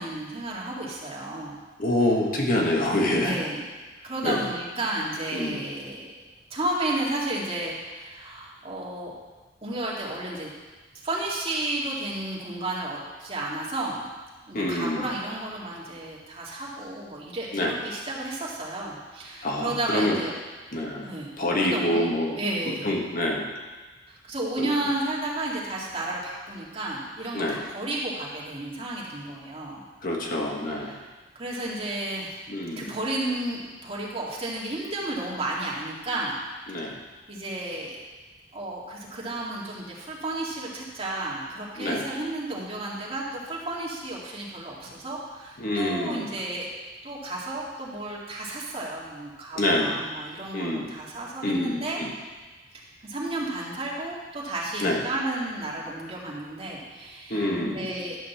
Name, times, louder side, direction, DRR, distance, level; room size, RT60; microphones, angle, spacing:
voice 1, 0.0-1.6 3.2-3.6 4.0-6.1 6.5-9.1 9.6-10.5 11.0-14.1 14.5-20.3 21.0-21.3 21.6-22.1 22.4-22.9 24.1-29.8 30.3-31.0 31.4-32.4 32.8-36.7 37.3-38.0 38.5-46.7 47.0-52.0 52.7-58.2, right 2 dB, 35° right, -4 dB, 2.1 m, -32 dB
voice 2, 1.8-3.3 4.2-4.5 5.3-5.6 14.5-15.1 17.5-17.7 19.4-20.2 20.7-21.1 21.4-22.4 22.7-23.5 24.6-24.7 27.3-27.6 30.0-30.9 32.5-32.9 36.7-37.0 41.8-42.1 45.6-46.2 49.6-50.0 50.5-50.9 51.4-52.1 54.8-55.0 57.3-57.9, left 1 dB, 50° left, -1 dB, 1.5 m, -26 dB
11.0 x 5.3 x 7.0 m, 1.3 s
head